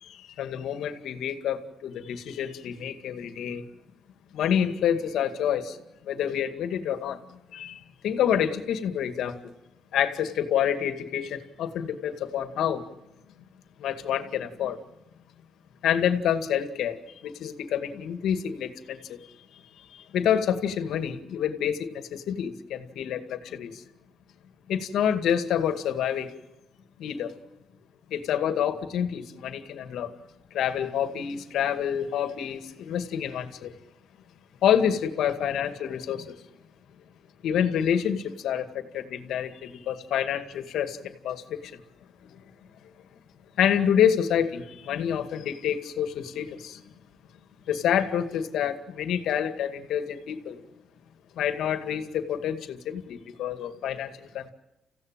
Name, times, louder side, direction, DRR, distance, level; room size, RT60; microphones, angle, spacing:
voice 1, 0.0-3.6 4.3-5.8 6.0-7.2 7.5-9.4 9.9-12.8 13.8-14.8 15.8-19.2 19.9-23.8 24.7-26.3 27.0-27.3 28.1-30.1 30.5-33.7 34.6-36.3 37.4-41.7 42.2-42.3 43.6-46.8 47.7-50.6 51.4-54.5, left 9 dB, 75° left, 2.1 m, -28 dB
29.5 x 16.0 x 9.1 m
cardioid pair, 90°, 0 cm